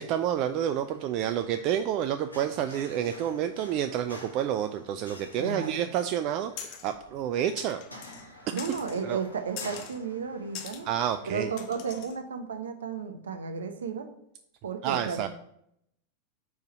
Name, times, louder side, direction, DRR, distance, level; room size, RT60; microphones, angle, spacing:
voice 1, 0.0-7.8 8.5-8.6 9.0-9.2 10.9-11.5 14.8-15.3, right 10 dB, 40° right, 8 dB, 0.3 m, -29 dB
sound 1, 0.5-12.0, left 1 dB, 85° left, 1.1 m, -50 dB
voice 2, 5.4-5.9 8.5-10.9 11.3-14.1 14.6-15.3, right 5 dB, 65° right, 7 dB, 0.8 m, -33 dB
sound 2, 6.6-6.9 7.6-8.3 8.6-9.0 9.6-10.0 10.5-10.8 11.6-12.2, left 8 dB, 40° left, 0.7 m, -42 dB
4.7 x 4.6 x 5.3 m, 0.73 s
figure-of-eight pair, 90°, 0 cm